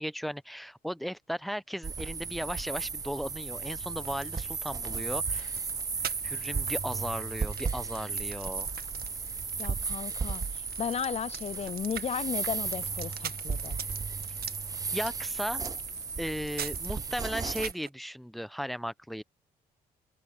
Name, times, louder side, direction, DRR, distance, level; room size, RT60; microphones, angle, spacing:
voice 1, 0.0-5.5 6.2-8.7 14.9-15.6 16.2-19.2, equal, ahead, 0.9 m, -36 dB
sound 1, 1.8-17.7, right 5 dB, 20° right, 0.4 m, -35 dB
sound 2, 4.0-17.9, right 9 dB, 60° right, 1.8 m, -46 dB
voice 2, 9.6-13.8, left 8 dB, 35° left, 0.5 m, -35 dB
supercardioid pair, 60°, 18 cm